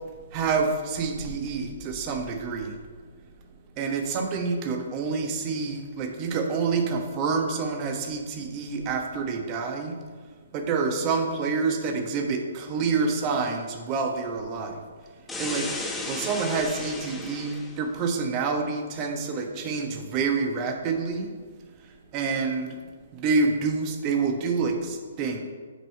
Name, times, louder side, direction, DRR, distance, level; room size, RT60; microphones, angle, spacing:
voice 1, 0.3-2.8 3.8-10.0 10.5-14.8 15.4-15.7 16.1-21.3 21.8-22.8 23.1-25.4, right 4 dB, 25° right, 4 dB, 1.1 m, -27 dB
sound 1, 15.3-17.8, left 2 dB, 5° left, 0.8 m, -34 dB
8.2 x 6.1 x 4.5 m, 1.5 s
figure-of-eight pair, 125°, 0 cm